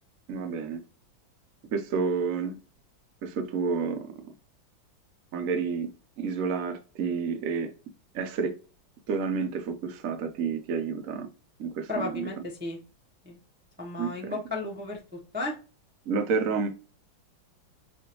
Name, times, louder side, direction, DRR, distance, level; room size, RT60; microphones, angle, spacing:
voice 1, 0.3-0.8 1.7-2.6 3.2-4.1 5.3-5.9 6.2-7.7 8.1-8.6 9.1-11.3 11.6-12.3 14.0-14.1 16.1-16.7, right 5 dB, 55° right, 1.0 m, -29 dB
voice 2, 11.9-12.8 13.2-13.4 13.8-15.6, left 2 dB, 10° right, 0.5 m, -34 dB
5.4 x 2.7 x 2.9 m
omnidirectional pair, 2.1 m